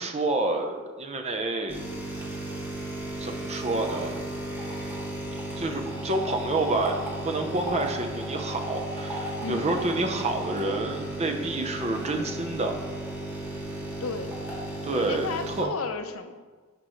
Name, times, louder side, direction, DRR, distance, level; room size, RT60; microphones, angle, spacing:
voice 1, 0.0-1.8 3.2-4.3 5.6-7.0 7.2-12.8 14.8-15.7, right 2 dB, 30° right, 4 dB, 0.8 m, -28 dB
sound 1, 1.7-15.6, right 1 dB, 10° right, 1.8 m, -34 dB
voice 2, 9.4-9.8 14.0-14.3 14.9-16.4, left 4 dB, 75° left, 7 dB, 0.7 m, -33 dB
11.0 x 6.0 x 3.1 m, 1.4 s
head